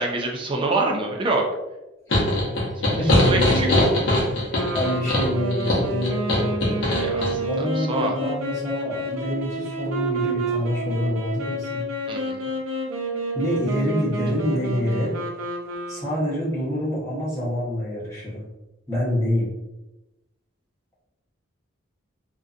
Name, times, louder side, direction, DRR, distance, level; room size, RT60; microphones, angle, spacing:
voice 1, 0.0-1.4 3.0-3.7 6.9-8.2 12.1-12.5, right 3 dB, 25° right, 1 dB, 0.3 m, -26 dB
sound 1, 2.1-7.3, left 1 dB, 65° left, 0.8 m, -21 dB
voice 2, 2.9-3.9 4.7-6.5 7.5-11.8 13.3-15.2 15.9-18.5 18.9-19.5, equal, 15° left, -8 dB, 0.8 m, -26 dB
sound 2, 4.5-16.4, right 2 dB, 90° right, 0.5 m, -29 dB
2.5 x 2.2 x 2.4 m, 0.99 s
head